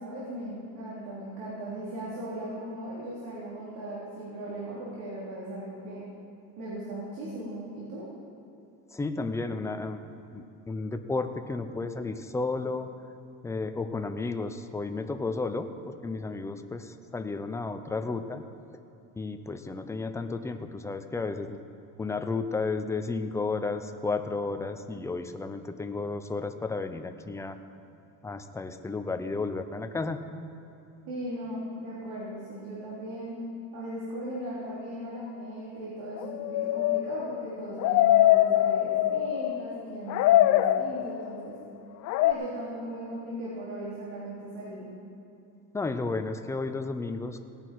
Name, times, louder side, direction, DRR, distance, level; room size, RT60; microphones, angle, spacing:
voice 1, 0.0-6.1 6.6-8.1 31.1-33.4 33.7-41.6 42.2-44.9, right 1 dB, 80° right, -8 dB, 3.8 m, -38 dB
voice 2, 8.9-10.0 10.3-12.9 13.4-18.4 19.2-21.6 22.0-27.6 28.2-30.2 45.7-47.4, left 3 dB, 10° left, 7 dB, 0.5 m, -33 dB
sound 1, 36.2-39.8 40.1-41.4 42.1-42.3, left 14 dB, 55° left, 0.5 m, -23 dB
17.5 x 10.5 x 4.6 m, 2.8 s
cardioid pair, 145°, 35 cm